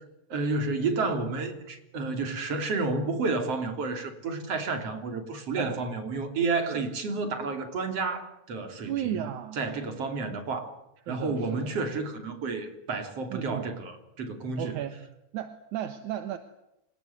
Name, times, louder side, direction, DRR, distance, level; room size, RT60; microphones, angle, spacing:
voice 1, 0.3-9.2 9.6-10.7 11.1-14.8, right 3 dB, 50° right, 6 dB, 4.2 m, -31 dB
voice 2, 8.8-9.6 11.1-11.7 13.3-13.7 14.6-15.0 15.3-16.4, right 11 dB, 75° right, 9 dB, 2.6 m, -34 dB
27.0 x 18.5 x 9.5 m, 0.87 s
omnidirectional pair, 3.6 m